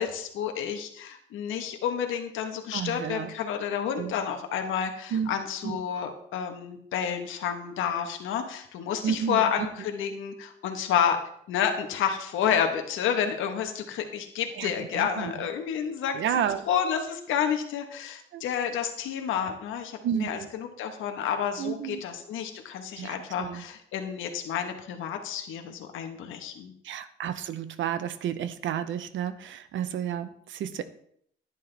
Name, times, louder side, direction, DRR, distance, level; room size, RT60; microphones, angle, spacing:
voice 1, 0.0-11.2 11.5-16.2 16.7-26.7, left 8 dB, 85° left, 5 dB, 1.3 m, -30 dB
voice 2, 2.7-3.3 4.0-4.1 5.1-5.3 5.6-5.8 9.0-9.5 14.6-15.3 16.1-16.7 18.3-18.4 20.0-20.5 21.6-22.0 23.0-23.6 26.8-30.8, right 9 dB, 75° right, 12 dB, 0.9 m, -31 dB
11.0 x 9.9 x 3.4 m, 0.67 s
cardioid pair, 90°, 20 cm